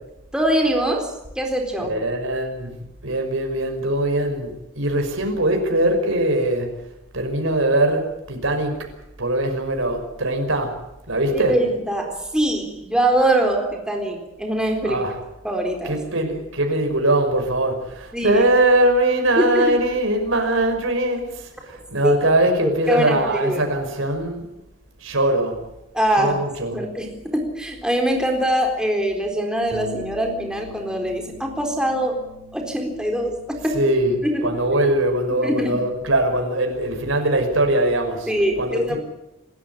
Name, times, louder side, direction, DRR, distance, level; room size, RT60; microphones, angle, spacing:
voice 1, 0.3-1.9 11.3-15.0 15.4-16.0 18.1-18.4 19.4-19.8 22.0-23.7 25.9-26.4 26.7-32.2 32.5-33.8 34.2-34.6 35.4-35.8 38.3-39.0, right 1 dB, 5° right, 2 dB, 4.1 m, -23 dB
voice 2, 1.8-6.7 7.1-8.9 9.2-10.8 11.1-11.6 14.8-15.1 15.8-24.5 25.0-25.6 26.2-26.8 33.7-38.3 38.6-39.0, right 1 dB, 85° right, 4 dB, 5.8 m, -21 dB
Bass guitar, 29.7-36.0, left 3 dB, 40° left, 3.8 m, -43 dB
28.0 x 13.5 x 9.8 m, 0.91 s
head